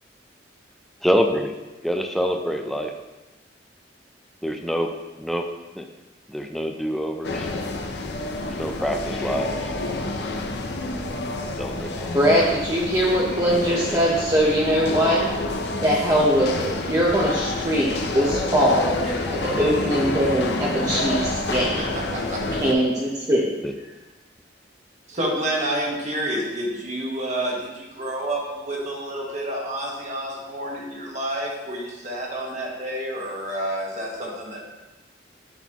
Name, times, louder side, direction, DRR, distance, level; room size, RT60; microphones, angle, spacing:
voice 1, 1.0-1.5 1.8-2.9 4.4-4.9 5.2-5.4 5.8-5.9 6.3-7.5 8.6-9.7 11.6-12.2 13.8-14.0 23.6-23.7, equal, ahead, 3 dB, 0.5 m, -26 dB
sound 1, 7.2-22.7, left 2 dB, 65° left, 0.6 m, -28 dB
voice 2, 12.1-15.2 15.8-17.9 18.1-18.9 19.3-21.9 22.6-23.5, equal, 20° right, -5 dB, 0.8 m, -21 dB
voice 3, 22.1-22.6 25.1-34.6, right 1 dB, 40° right, -2 dB, 1.4 m, -29 dB
11.0 x 4.0 x 3.0 m, 1.1 s
head